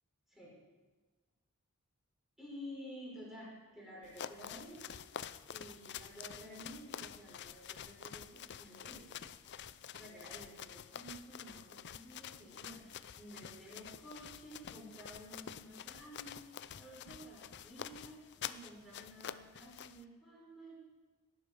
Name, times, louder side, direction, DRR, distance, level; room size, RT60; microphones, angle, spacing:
voice 1, 2.4-5.0 5.4-9.1 9.9-20.7, equal, ahead, -6 dB, 5.6 m, -52 dB
sound 1, 4.0-20.0, left 9 dB, 50° left, 0.5 m, -48 dB
18.5 x 11.0 x 5.4 m, 1.3 s
head